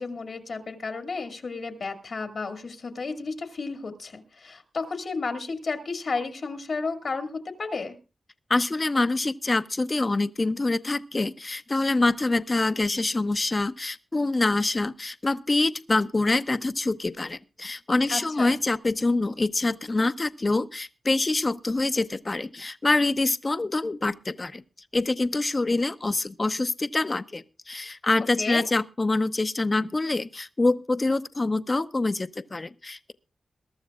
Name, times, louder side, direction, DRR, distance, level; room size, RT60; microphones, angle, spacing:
voice 1, 0.0-7.9 18.1-18.6 28.4-28.7, left 4 dB, 70° left, 2.3 m, -32 dB
voice 2, 8.5-24.6 24.9-33.1, left 2 dB, 35° left, 0.7 m, -25 dB
22.0 x 13.0 x 2.4 m
wide cardioid pair, 90°, 0 cm